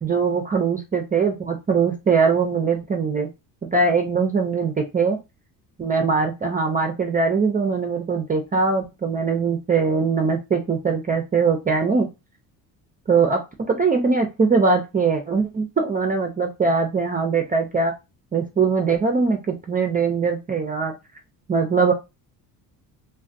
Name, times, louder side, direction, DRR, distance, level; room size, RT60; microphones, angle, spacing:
voice 1, 0.0-3.3 3.7-5.2 5.8-12.1 13.1-17.9 18.3-20.9 21.5-21.9, right 4 dB, 20° right, 3 dB, 0.4 m, -21 dB
2.4 x 2.2 x 2.6 m, 0.25 s
supercardioid pair, 75°, 44 cm